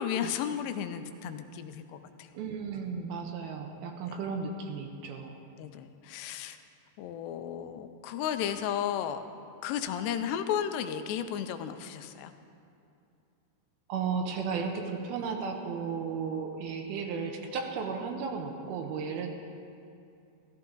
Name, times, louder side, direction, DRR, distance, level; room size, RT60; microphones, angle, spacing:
voice 1, 0.0-2.3 4.1-4.2 5.6-6.6 7.0-9.2 9.6-12.3, left 9 dB, 85° left, 9 dB, 2.8 m, -34 dB
voice 2, 2.3-5.4 13.9-19.3, right 5 dB, 75° right, 3 dB, 2.6 m, -34 dB
14.5 x 14.0 x 3.8 m, 2.6 s
omnidirectional pair, 4.8 m